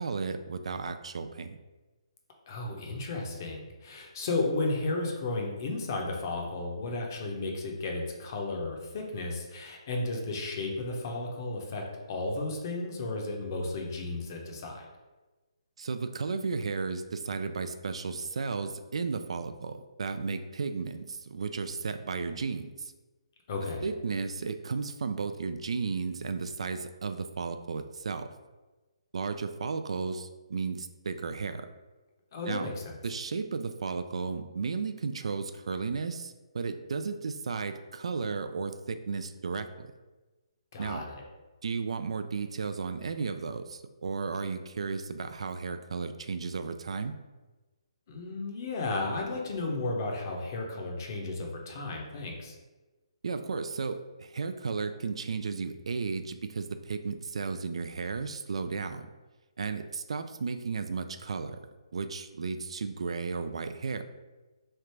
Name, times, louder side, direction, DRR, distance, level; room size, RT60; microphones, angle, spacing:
voice 1, 0.0-1.6 15.8-22.9 23.8-28.3 29.1-31.7 32.5-32.7 33.0-39.9 40.8-41.1 41.6-47.1 53.2-59.1 59.6-61.6 61.9-64.0, right 4 dB, 70° right, 9 dB, 0.3 m, -34 dB
voice 2, 2.5-11.8 12.1-14.9 23.5-23.8 32.3-32.9 40.7-41.2 48.1-52.5, left 2 dB, 35° left, 1 dB, 0.7 m, -33 dB
3.2 x 2.5 x 4.3 m, 1.2 s
hypercardioid pair, 165°, 3 cm